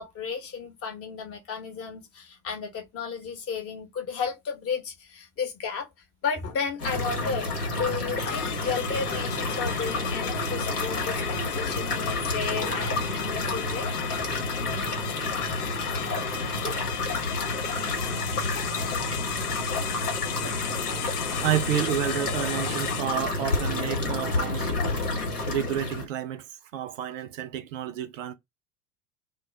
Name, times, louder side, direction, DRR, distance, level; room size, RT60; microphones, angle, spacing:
voice 1, 0.0-5.9 6.2-14.2, left 6 dB, 30° left, 0.9 m, -33 dB
sound 1, 6.8-26.1, left 2 dB, 80° left, 1.1 m, -30 dB
sound 2, 8.2-23.0, left 9 dB, 55° left, 0.5 m, -36 dB
voice 2, 21.4-24.8 25.5-26.4 26.7-28.3, right 10 dB, 55° right, 0.5 m, -30 dB
2.2 x 2.0 x 3.2 m
figure-of-eight pair, 80°, 46 cm